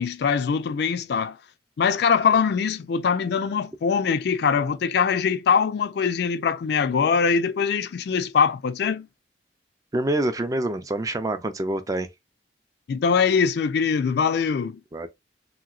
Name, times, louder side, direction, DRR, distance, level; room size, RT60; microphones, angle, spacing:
voice 1, 0.0-1.4 1.8-9.1 12.9-14.8, left 6 dB, 60° left, 0.3 m, -22 dB
voice 2, 9.9-12.1 14.9-15.1, right 1 dB, 20° right, 0.3 m, -26 dB
2.9 x 2.9 x 2.4 m
head